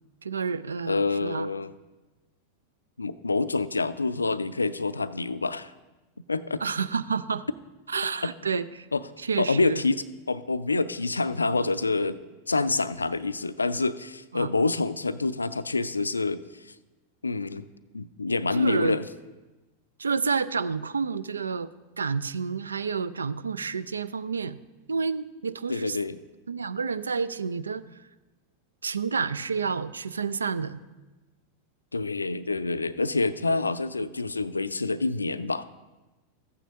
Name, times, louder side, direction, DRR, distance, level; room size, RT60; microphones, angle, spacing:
voice 1, 0.2-1.5 6.6-7.5 7.9-8.9 9.2-9.8 14.3-14.5 18.5-19.0 20.0-21.7 22.0-24.6 24.9-26.0 26.5-27.8 28.8-30.8, right 5 dB, 75° right, 15 dB, 0.3 m, -29 dB
voice 2, 0.9-1.7 3.0-5.7 6.3-6.6 8.9-9.0 9.4-12.2 12.5-16.4 17.2-17.7 17.9-19.0 25.7-26.2 31.9-35.6, left 3 dB, 80° left, 15 dB, 0.3 m, -27 dB
14.5 x 9.0 x 2.7 m, 1.1 s
figure-of-eight pair, 90°, 0 cm